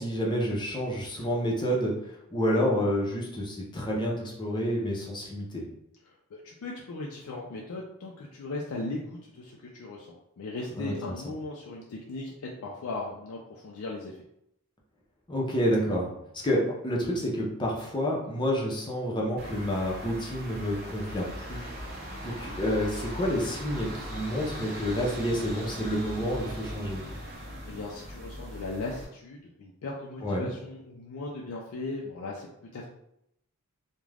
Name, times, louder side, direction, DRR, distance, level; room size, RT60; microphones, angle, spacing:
voice 1, 0.0-1.9 2.3-5.6 10.7-11.1 15.3-16.1 16.4-21.7 22.2-27.0 30.2-30.5, equal, 20° left, -3 dB, 0.6 m, -29 dB
voice 2, 6.3-10.1 10.4-14.1 27.4-32.9, left 2 dB, 70° left, -2 dB, 0.4 m, -38 dB
sound 1, 19.4-29.0, equal, 45° right, 0.6 m, -39 dB
2.4 x 2.1 x 3.2 m, 0.79 s
head